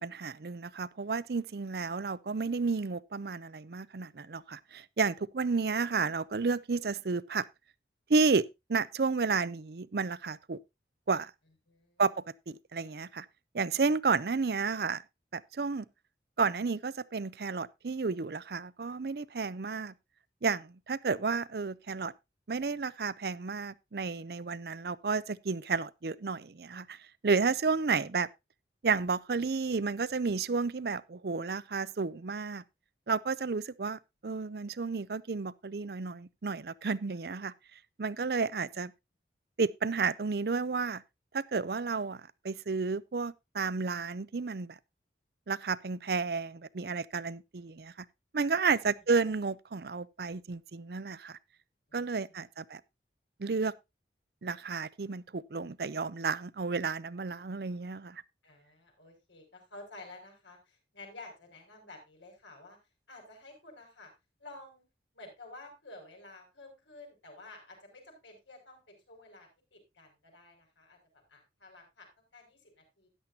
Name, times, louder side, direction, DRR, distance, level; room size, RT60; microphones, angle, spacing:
voice 1, 0.0-7.4 8.1-10.6 11.1-11.3 12.0-12.1 12.5-13.3 13.5-15.0 15.3-15.9 16.4-19.9 20.4-22.1 22.5-27.0 27.2-28.3 28.8-32.6 33.1-37.5 38.0-38.9 39.6-41.0 41.3-44.8 45.5-47.9 48.3-51.4 51.9-52.8 53.4-53.7 54.4-58.2, right 4 dB, 55° right, 0.5 m, -31 dB
voice 2, 11.7-12.0 38.7-38.8 48.7-49.0 51.9-52.4 58.4-62.8 63.1-64.1 64.4-64.8 65.1-73.1, left 2 dB, 85° left, 5.8 m, -52 dB
13.0 x 10.5 x 2.7 m
head